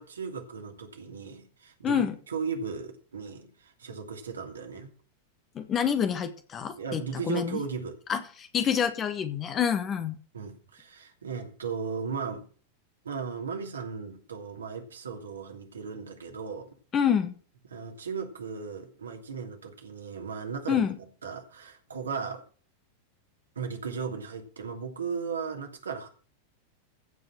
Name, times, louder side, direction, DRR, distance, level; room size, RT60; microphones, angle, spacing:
voice 1, 0.0-4.9 6.8-8.0 10.3-12.5 13.0-16.8 17.7-20.8 21.2-22.4 23.5-26.1, right 5 dB, 70° right, 2.7 m, -36 dB
voice 2, 5.5-7.6 8.1-10.1 16.9-17.3 20.7-20.9, left 8 dB, 25° left, 1.7 m, -27 dB
15.5 x 5.4 x 7.6 m
figure-of-eight pair, 90°, 0 cm